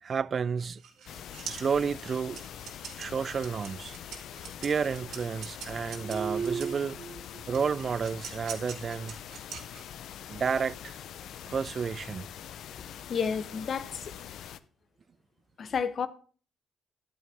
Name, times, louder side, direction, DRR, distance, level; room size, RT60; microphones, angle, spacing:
voice 1, 0.0-0.8 1.5-2.4 3.0-3.9 4.3-9.2 10.3-11.0 11.5-12.3, right 6 dB, 45° right, 0.3 m, -31 dB
sound 1, 0.6-6.8 7.5-10.1, right 7 dB, 75° right, 2.1 m, -44 dB
sound 2, 1.1-14.6, left 10 dB, 75° left, 0.6 m, -44 dB
voice 2, 13.1-14.1 15.6-16.1, left 6 dB, 50° left, 0.9 m, -31 dB
11.0 x 9.3 x 3.5 m
cardioid pair, 90°, 0 cm